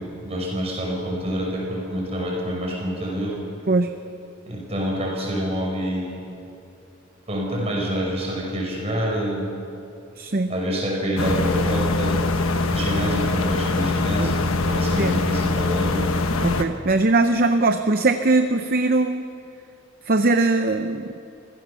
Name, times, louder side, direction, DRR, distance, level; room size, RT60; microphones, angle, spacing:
voice 1, 0.0-3.4 4.5-6.2 7.3-9.5 10.5-12.2 12.7-16.1, equal, 30° right, -2 dB, 5.8 m, -27 dB
voice 2, 10.2-10.5 14.2-14.4 15.0-15.2 16.4-19.3 20.1-21.1, right 2 dB, 45° right, 8 dB, 0.7 m, -20 dB
sound 1, 11.2-16.6, left 3 dB, 85° left, 1.2 m, -23 dB
25.0 x 16.0 x 6.9 m, 2.7 s
head